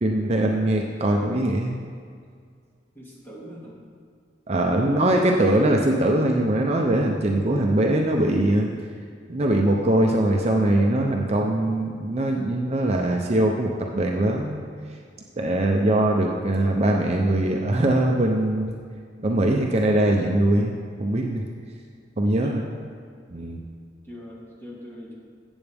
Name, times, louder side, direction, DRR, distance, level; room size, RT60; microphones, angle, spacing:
voice 1, 0.0-1.7 4.5-8.7 9.3-14.6 15.4-18.7 19.2-20.7 21.0-21.4 22.2-22.7 23.3-23.6, right 1 dB, 35° right, 0 dB, 0.6 m, -22 dB
voice 2, 2.9-3.7 4.7-5.4 22.4-22.7 24.0-25.2, equal, 10° left, -5 dB, 2.0 m, -41 dB
14.5 x 8.0 x 3.5 m, 2.1 s
head